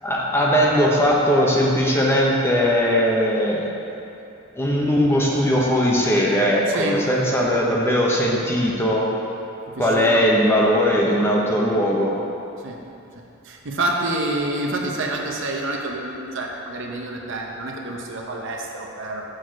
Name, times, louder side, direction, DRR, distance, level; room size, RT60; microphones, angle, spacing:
voice 1, 0.0-3.7 4.5-9.1 9.8-12.1, equal, 10° left, -3 dB, 0.8 m, -19 dB
voice 2, 6.7-7.0 9.7-10.3 12.6-12.8 13.4-19.2, right 2 dB, 60° right, 0 dB, 0.8 m, -28 dB
6.4 x 4.2 x 6.2 m, 2.8 s
head